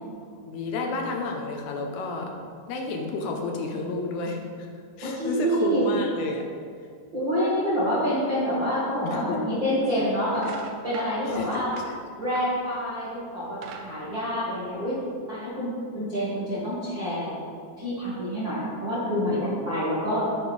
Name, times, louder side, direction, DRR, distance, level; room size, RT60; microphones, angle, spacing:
voice 1, 0.4-2.3 2.7-4.7 5.0-6.5 9.0-9.5 11.3-12.0, left 3 dB, 75° left, 2 dB, 2.7 m, -31 dB
voice 2, 5.0-5.9 7.1-10.5 10.8-11.7 12.2-14.9 15.3-17.3 17.8-20.3, equal, 50° right, -10 dB, 1.4 m, -27 dB
sound 1, 9.0-9.1 9.7-9.9 10.3-13.0 13.4-15.0, right 5 dB, 85° right, 3.1 m, -43 dB
9.7 x 9.7 x 3.4 m, 2.2 s
omnidirectional pair, 5.2 m